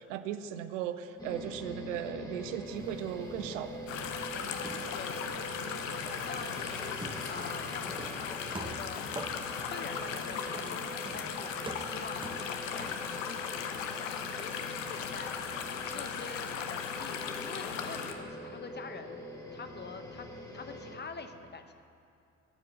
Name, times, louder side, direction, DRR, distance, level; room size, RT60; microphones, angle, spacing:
voice 1, 0.0-3.9, right 10 dB, 85° right, 11 dB, 0.5 m, -37 dB
sound 1, 1.2-21.0, equal, 10° left, 1.8 m, -44 dB
sound 2, 2.7-5.0 5.3-13.1, right 2 dB, 15° right, 0.9 m, -47 dB
sound 3, 3.9-18.1, left 7 dB, 85° left, 0.6 m, -37 dB
voice 2, 4.4-19.2 19.5-20.3 20.5-21.7, left 4 dB, 30° left, 8 dB, 0.8 m, -46 dB
13.5 x 4.9 x 7.2 m, 2.5 s
hypercardioid pair, 45°, 37 cm